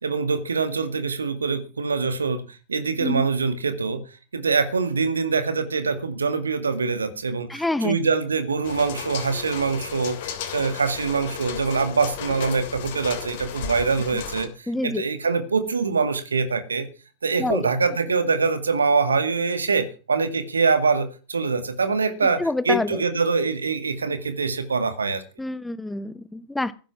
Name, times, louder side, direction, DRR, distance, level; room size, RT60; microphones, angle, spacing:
voice 1, 0.0-4.0 4.3-16.9 17.2-22.4 22.7-25.2, right 4 dB, 75° right, 10 dB, 2.1 m, -24 dB
voice 2, 7.5-8.0 14.7-15.0 17.4-17.7 22.4-23.0 25.4-26.7, left 2 dB, 5° left, 17 dB, 0.9 m, -26 dB
sound 1, 8.6-14.5, left 8 dB, 55° left, 3.0 m, -34 dB
15.5 x 10.5 x 6.0 m, 0.36 s
figure-of-eight pair, 90°, 0 cm